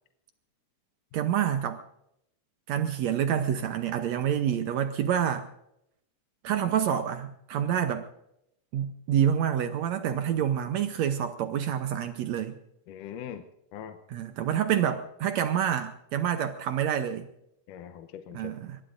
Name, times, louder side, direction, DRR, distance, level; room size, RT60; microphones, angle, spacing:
voice 1, 1.1-1.8 2.7-5.5 6.4-8.1 8.7-12.6 14.1-17.3 18.3-18.8, right 9 dB, 70° right, 8 dB, 1.8 m, -27 dB
voice 2, 10.1-10.4 12.9-13.4 13.7-14.0 17.7-18.5, left 9 dB, 80° left, 7 dB, 2.3 m, -41 dB
23.0 x 21.5 x 2.6 m, 0.79 s
omnidirectional pair, 3.8 m